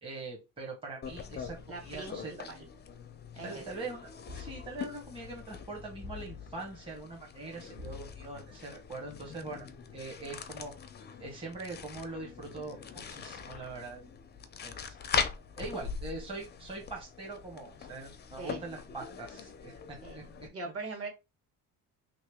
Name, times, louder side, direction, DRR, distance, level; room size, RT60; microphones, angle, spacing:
voice 1, 0.0-2.5 3.4-9.7 9.9-10.7 11.2-14.1 14.6-15.0 15.6-20.5, right 3 dB, 15° right, -1 dB, 1.0 m, -42 dB
sound 1, 1.0-20.5, left 6 dB, 30° left, 0.4 m, -42 dB
voice 2, 1.7-2.2 2.5-2.7 3.3-3.6 18.4-18.6 20.0-21.1, right 3 dB, 40° right, 2 dB, 1.4 m, -41 dB
sound 2, 4.3-5.0 6.0-6.8 7.8-8.5, left 5 dB, 90° right, 2.0 m, -47 dB
3.0 x 2.8 x 3.4 m, 0.25 s
cardioid pair, 115°, 37 cm